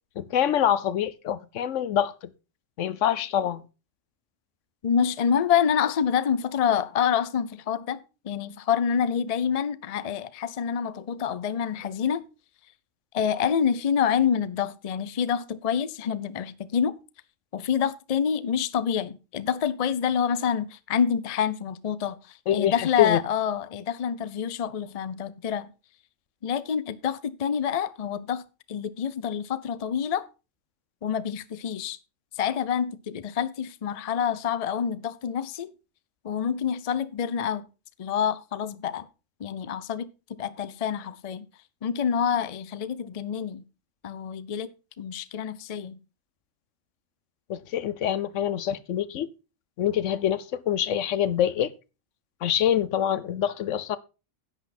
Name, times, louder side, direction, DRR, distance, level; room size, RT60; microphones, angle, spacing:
voice 1, 0.2-2.1 2.8-3.6 22.5-23.2 47.5-49.3 49.8-51.7 52.4-54.0, left 10 dB, 75° left, 1.0 m, -25 dB
voice 2, 4.8-12.2 13.1-17.0 17.5-25.7 26.4-28.4 28.7-30.3 31.0-32.0 32.4-35.7 36.2-37.6 38.0-39.1 39.4-40.1 40.4-41.5 41.8-43.6 44.0-44.7 45.0-46.0, left 8 dB, 45° left, 0.5 m, -27 dB
11.0 x 8.2 x 4.2 m
omnidirectional pair, 1.3 m